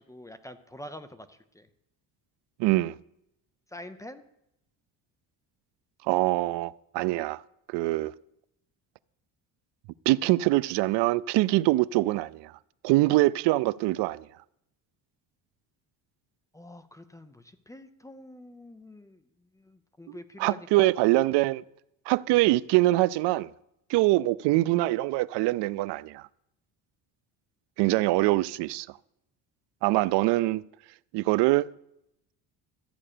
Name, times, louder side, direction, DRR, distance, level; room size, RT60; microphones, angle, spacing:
voice 1, 0.0-1.7 3.7-4.2 10.2-10.3 16.5-20.9, left 1 dB, 10° left, 0.5 m, -46 dB
voice 2, 2.6-3.0 6.1-7.4 7.7-8.1 10.1-12.5 12.8-14.3 20.1-21.6 22.1-23.5 23.9-26.3 27.8-28.9 29.8-30.6 31.1-31.7, right 18 dB, 80° right, 0.5 m, -24 dB
13.5 x 8.6 x 6.7 m
cardioid pair, 165°, 41 cm